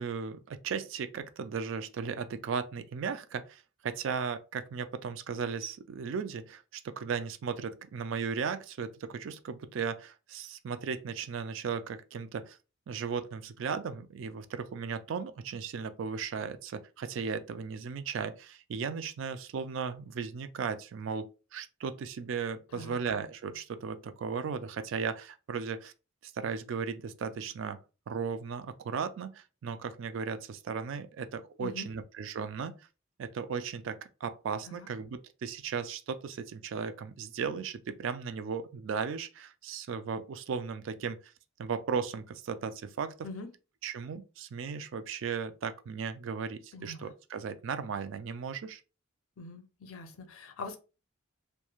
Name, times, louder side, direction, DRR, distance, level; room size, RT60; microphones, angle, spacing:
voice 1, 0.0-12.6 12.9-25.9 26.2-27.8 28.1-32.7 33.2-41.3 41.6-43.3 43.8-48.8, right 6 dB, 65° right, 0.3 m, -36 dB
voice 2, 46.7-47.1 49.4-50.8, left 3 dB, 90° left, 0.6 m, -43 dB
3.0 x 2.1 x 2.3 m
head